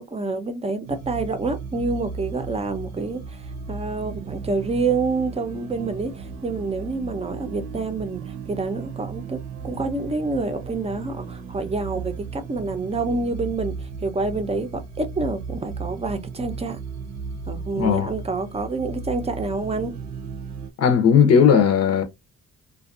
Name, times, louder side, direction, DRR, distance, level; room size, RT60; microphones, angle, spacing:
voice 1, 0.0-16.8 17.5-19.9, right 3 dB, 20° right, 0.6 m, -28 dB
sound 1, 0.8-20.7, right 5 dB, 75° right, 0.8 m, -35 dB
voice 2, 17.8-18.1 20.8-22.0, left 7 dB, 55° left, 0.7 m, -16 dB
2.5 x 2.3 x 2.4 m
cardioid pair, 90°, 30 cm